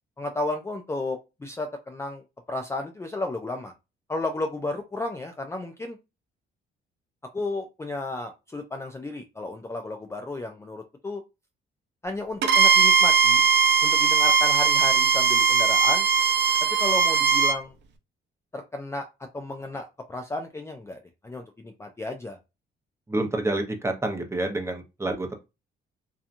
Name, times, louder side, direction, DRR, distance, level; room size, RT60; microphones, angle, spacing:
voice 1, 0.2-3.7 4.1-6.0 7.3-11.2 12.0-13.5 13.8-16.1 16.6-17.7 18.5-19.1 19.3-22.4, left 2 dB, 15° left, 4 dB, 0.4 m, -33 dB
Bowed string instrument, 12.4-17.6, right 6 dB, 65° right, 0.5 m, -20 dB
voice 2, 23.1-25.3, right 2 dB, 15° right, 4 dB, 0.7 m, -28 dB
2.8 x 2.3 x 2.5 m, 0.25 s
cardioid pair, 85°, 20 cm